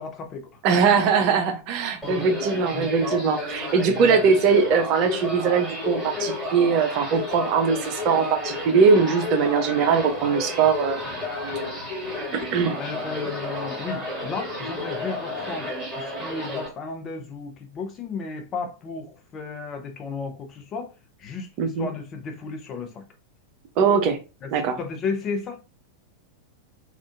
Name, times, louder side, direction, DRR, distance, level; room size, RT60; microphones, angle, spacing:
voice 1, 0.0-0.6 2.0-2.2 2.7-2.9 3.9-4.3 12.5-20.9 21.2-23.0 24.4-25.6, left 4 dB, 30° left, 0.7 m, -34 dB
voice 2, 0.6-11.0 12.3-12.8 21.6-21.9 23.8-24.2 24.5-24.8, right 5 dB, 40° right, 0.5 m, -21 dB
sound 1, 2.0-16.7, left 2 dB, 5° right, 1.8 m, -31 dB
3.6 x 2.4 x 2.5 m
figure-of-eight pair, 90°, 0 cm